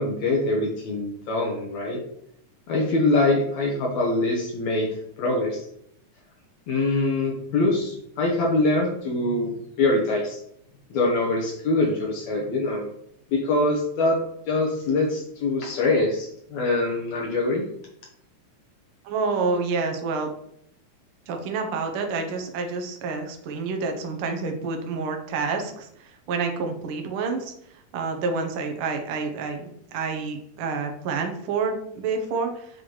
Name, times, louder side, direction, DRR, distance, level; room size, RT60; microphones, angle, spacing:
voice 1, 0.0-2.0 2.7-4.9 5.2-5.6 6.7-10.4 10.9-12.9 13.3-14.2 14.5-17.7, left 2 dB, 70° left, -1 dB, 2.1 m, -24 dB
voice 2, 19.0-20.3 21.3-27.5 27.9-32.6, right 4 dB, 70° right, 4 dB, 1.3 m, -28 dB
7.9 x 4.0 x 3.1 m, 0.72 s
omnidirectional pair, 3.5 m